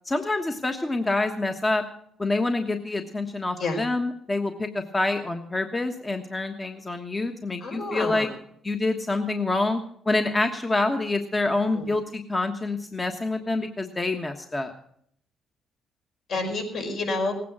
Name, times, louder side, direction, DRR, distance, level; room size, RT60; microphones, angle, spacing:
voice 1, 0.1-1.8 2.2-8.3 8.6-14.7, left 2 dB, 20° left, 5 dB, 1.3 m, -27 dB
voice 2, 7.6-8.3 11.7-11.9 16.3-17.3, left 3 dB, 65° left, 2 dB, 5.3 m, -29 dB
18.0 x 9.3 x 6.2 m, 0.68 s
cardioid pair, 90°, 0 cm